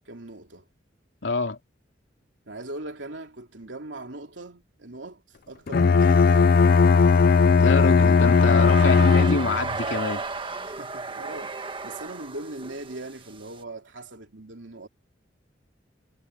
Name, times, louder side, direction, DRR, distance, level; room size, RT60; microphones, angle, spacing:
voice 1, 0.0-0.6 2.5-6.9 7.8-8.1 10.6-14.9, right 2 dB, 85° right, 3.0 m, -40 dB
voice 2, 1.2-1.6 7.6-10.2, left 3 dB, 80° left, 3.0 m, -26 dB
Bowed string instrument, 5.7-9.7, left 5 dB, 55° left, 0.4 m, -17 dB
sound 1, 6.0-13.6, right 3 dB, 30° right, 1.6 m, -35 dB
head